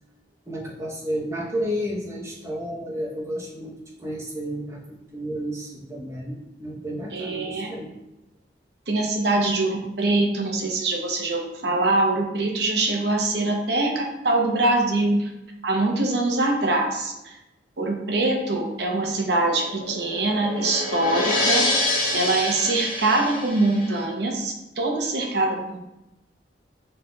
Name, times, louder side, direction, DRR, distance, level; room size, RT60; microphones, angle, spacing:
voice 1, 0.5-7.9, equal, 15° right, -3 dB, 0.8 m, -32 dB
voice 2, 7.1-7.7 8.9-15.3 15.6-17.4 17.8-21.7 22.1-25.8, right 2 dB, 65° right, 1 dB, 0.8 m, -23 dB
sound 1, 19.2-24.0, left 2 dB, 55° left, 1.5 m, -27 dB
5.4 x 3.9 x 2.3 m, 0.95 s
head